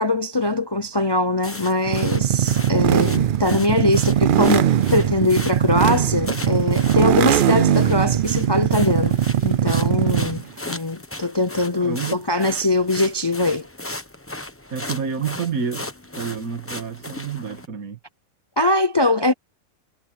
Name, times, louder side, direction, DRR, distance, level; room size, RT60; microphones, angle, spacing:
voice 1, 0.0-13.7 18.6-19.3, left 2 dB, 25° left, 0.5 m, -22 dB
sound 1, 1.4-17.7, left 2 dB, 10° left, 1.0 m, -37 dB
sound 2, 1.9-10.4, right 10 dB, 70° right, 0.5 m, -20 dB
voice 2, 11.7-12.2 14.7-15.9 16.2-18.0, right 6 dB, 90° right, 2.0 m, -29 dB
omnidirectional pair, 1.5 m